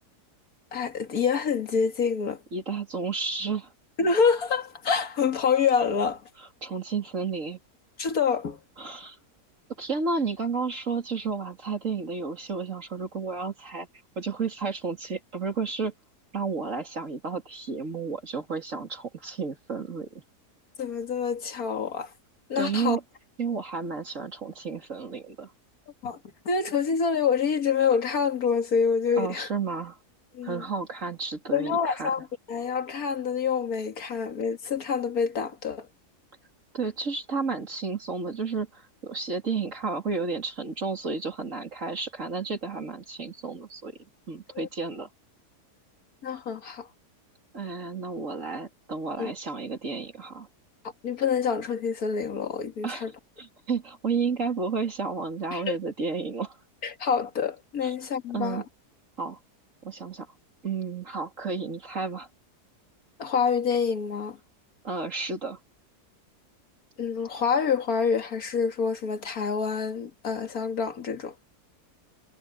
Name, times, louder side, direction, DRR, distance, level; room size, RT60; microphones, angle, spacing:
voice 1, 0.7-2.4 4.0-6.3 8.0-8.6 20.8-22.1 22.5-23.0 26.0-26.2 26.5-29.5 30.3-30.7 31.5-35.9 44.6-44.7 46.2-46.9 49.2-49.3 51.0-53.1 55.5-55.8 56.8-58.6 63.2-64.4 67.0-71.3, left 6 dB, 65° left, 2.3 m, -27 dB
voice 2, 2.5-3.7 6.6-7.6 8.8-9.2 9.8-13.9 14.2-15.9 16.3-20.2 22.6-23.0 23.4-25.5 29.2-30.0 30.4-32.1 36.7-43.9 44.3-45.1 47.5-50.5 52.8-53.1 53.4-56.6 57.8-57.9 58.3-58.6 59.2-59.4 59.8-60.3 60.6-62.3 64.8-65.6, right 4 dB, 50° right, 3.7 m, -32 dB
omnidirectional pair, 1.7 m